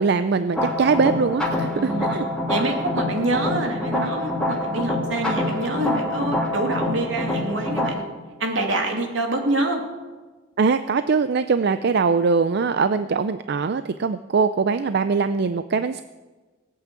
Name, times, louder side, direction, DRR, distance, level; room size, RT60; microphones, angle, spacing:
voice 1, 0.0-2.3 10.6-16.0, right 5 dB, 60° right, 11 dB, 0.5 m, -22 dB
sound 1, 0.5-7.9, left 1 dB, 5° left, 2.6 m, -26 dB
voice 2, 1.7-2.1 2.5-8.0 8.4-9.8, right 2 dB, 80° right, 2 dB, 2.8 m, -26 dB
18.5 x 8.5 x 8.3 m, 1.3 s
head